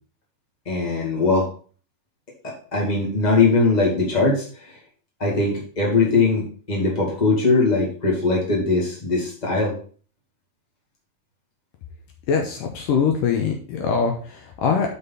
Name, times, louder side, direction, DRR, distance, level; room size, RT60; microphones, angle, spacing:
voice 1, 0.6-1.5 2.4-4.8 5.2-9.7, left 3 dB, 45° left, -3 dB, 0.5 m, -21 dB
voice 2, 12.3-15.0, left 6 dB, 70° left, 2 dB, 2.2 m, -23 dB
6.4 x 5.3 x 5.5 m, 0.42 s
omnidirectional pair, 4.6 m